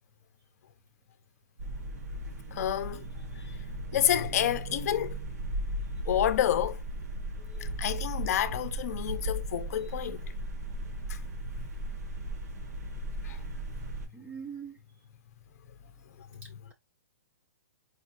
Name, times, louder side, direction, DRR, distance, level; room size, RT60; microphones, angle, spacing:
sound 1, 1.6-14.1, right 1 dB, 60° right, 1.5 m, -36 dB
voice 1, 2.5-3.1 3.9-5.2 6.1-6.8 7.6-10.3 11.1-11.2 13.2-13.4 16.2-16.4, left 10 dB, 55° left, 0.6 m, -29 dB
voice 2, 14.1-14.8, right 6 dB, 15° right, 0.7 m, -43 dB
4.6 x 3.0 x 2.5 m
hypercardioid pair, 150°, 10 cm